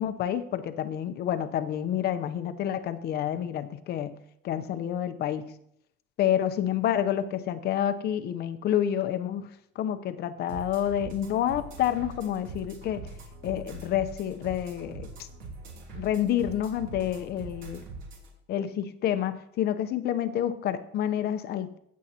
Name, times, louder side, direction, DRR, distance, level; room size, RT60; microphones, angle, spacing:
voice 1, 0.0-4.2 4.4-5.5 6.2-9.5 9.8-13.0 13.4-15.3 15.9-17.8 18.5-21.8, left 10 dB, 50° left, 11 dB, 0.8 m, -28 dB
sound 1, 10.5-18.3, right 3 dB, 65° right, 3.1 m, -43 dB
16.0 x 7.4 x 2.9 m, 0.72 s
cardioid pair, 155°, 21 cm